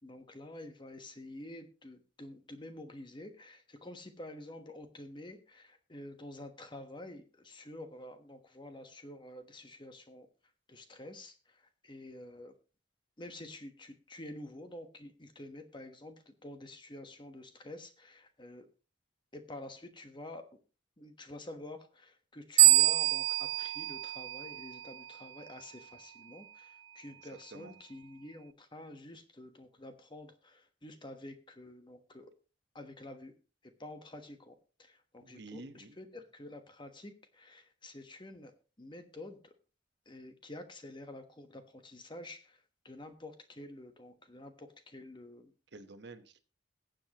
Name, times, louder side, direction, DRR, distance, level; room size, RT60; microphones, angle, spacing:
voice 1, 0.0-10.3 10.7-12.5 13.2-18.7 19.3-20.5 21.0-32.3 32.7-33.3 33.6-38.5 38.8-39.5 40.0-45.5, left 1 dB, 25° left, 7 dB, 1.2 m, -49 dB
sound 1, 22.6-25.1, right 16 dB, 80° right, 0.5 m, -25 dB
voice 2, 35.2-35.9 45.7-46.4, right 2 dB, 65° right, 9 dB, 1.2 m, -49 dB
20.5 x 7.6 x 3.0 m, 0.33 s
head